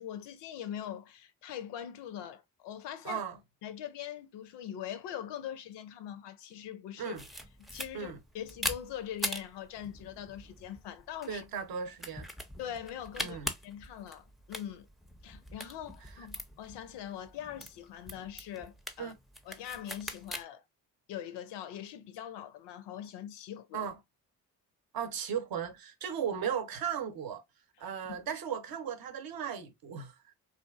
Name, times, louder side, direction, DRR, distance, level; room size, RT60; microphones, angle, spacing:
voice 1, 0.0-3.2 3.6-7.1 7.6-11.4 12.6-14.9 15.2-19.1 19.4-20.6 21.1-23.9 28.0-28.3, left 10 dB, 70° left, 0.5 m, -42 dB
voice 2, 3.0-3.4 7.0-7.2 7.9-8.2 11.3-12.3 13.2-13.5 19.0-19.1 23.7-24.0 24.9-27.4 27.8-30.1, right 8 dB, 55° right, 0.7 m, -36 dB
sound 1, 7.2-20.4, equal, ahead, 0.4 m, -42 dB
2.8 x 2.3 x 2.3 m
hypercardioid pair, 45°, 43 cm